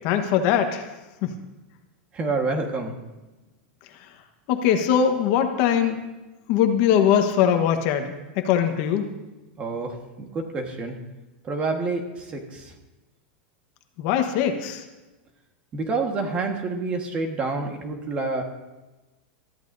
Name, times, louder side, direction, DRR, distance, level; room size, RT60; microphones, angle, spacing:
voice 1, 0.0-0.9 1.2-1.4 4.5-6.0 6.5-9.1 14.0-14.8, left 9 dB, 45° left, 5 dB, 1.3 m, -21 dB
voice 2, 2.1-2.9 9.6-11.0 11.4-12.7 15.7-18.4, right 3 dB, 20° right, 3 dB, 1.6 m, -28 dB
22.5 x 14.0 x 2.7 m, 1.1 s
supercardioid pair, 165°, 5 cm